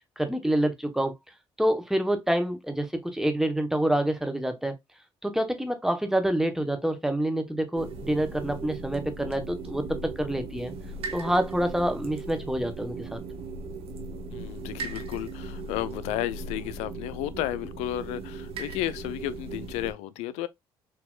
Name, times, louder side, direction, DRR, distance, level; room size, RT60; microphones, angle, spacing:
voice 1, 0.2-1.1 1.6-4.7 5.2-10.7 11.1-13.2, right 1 dB, 5° right, 0.9 m, -27 dB
sound 1, 7.8-19.9, right 3 dB, 60° right, 0.9 m, -38 dB
voice 2, 14.3-20.5, left 13 dB, 80° left, 0.4 m, -33 dB
4.2 x 2.8 x 2.3 m
supercardioid pair, 70°, 11 cm